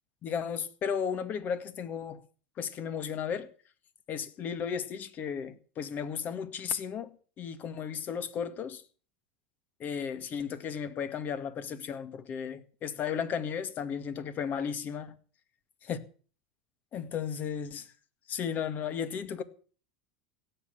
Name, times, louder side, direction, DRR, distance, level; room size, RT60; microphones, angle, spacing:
voice 1, 0.2-2.2 2.6-3.5 4.1-8.8 9.8-15.2 15.9-16.0 16.9-17.9 18.3-19.4, left 7 dB, 40° left, 2.1 m, -34 dB
16.5 x 8.3 x 9.0 m
hypercardioid pair, 90°, 4 cm